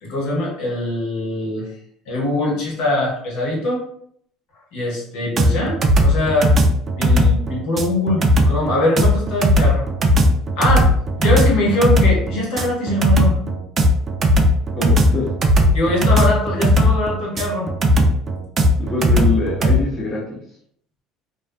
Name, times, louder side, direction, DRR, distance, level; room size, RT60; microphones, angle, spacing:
voice 1, 0.0-1.7 2.1-3.8 4.7-6.5 7.0-9.9 10.6-10.9 11.2-13.4 15.7-17.7, left 1 dB, 70° left, -3 dB, 1.0 m, -22 dB
sound 1, 5.4-19.8, equal, 35° right, 0.4 m, -16 dB
voice 2, 14.7-15.3 18.9-20.4, left 2 dB, 30° left, -6 dB, 0.7 m, -23 dB
2.4 x 2.3 x 2.2 m, 0.67 s
supercardioid pair, 100°, 0 cm